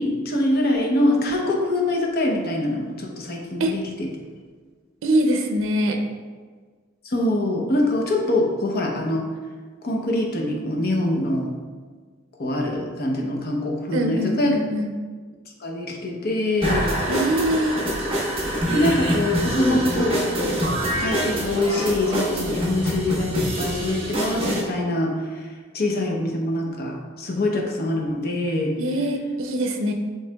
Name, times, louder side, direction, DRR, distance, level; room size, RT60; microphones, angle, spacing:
voice 1, 0.0-4.1 7.0-9.3 9.8-11.5 12.4-14.6 15.6-16.9 18.7-20.7 21.0-25.5 25.7-28.7, left 1 dB, 50° left, 0 dB, 0.7 m, -24 dB
voice 2, 5.0-6.0 13.9-14.9 17.1-17.9 28.8-29.9, right 1 dB, 85° right, 4 dB, 0.5 m, -23 dB
sound 1, 16.6-24.6, equal, 30° right, 1.0 m, -25 dB
7.3 x 3.2 x 2.2 m, 1.5 s
head